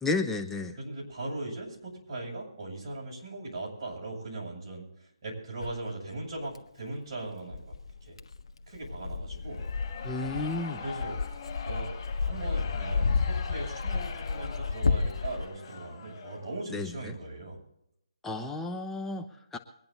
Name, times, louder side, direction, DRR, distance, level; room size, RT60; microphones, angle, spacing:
voice 1, 0.0-0.8 10.0-10.8 16.7-17.2 18.2-19.6, left 3 dB, 5° left, 4 dB, 0.9 m, -32 dB
voice 2, 0.8-7.7 8.0-8.1 8.7-9.6 10.8-11.2 11.6-11.9 12.2-17.6, right 2 dB, 35° right, -3 dB, 7.9 m, -39 dB
Dog, 5.6-5.7 6.5-6.6 7.5-15.4, left 4 dB, 70° left, 1.3 m, -31 dB
sound 1, 9.4-16.6, left 6 dB, 35° left, 5.6 m, -43 dB
24.0 x 10.5 x 4.0 m, 0.76 s
figure-of-eight pair, 155°, 3 cm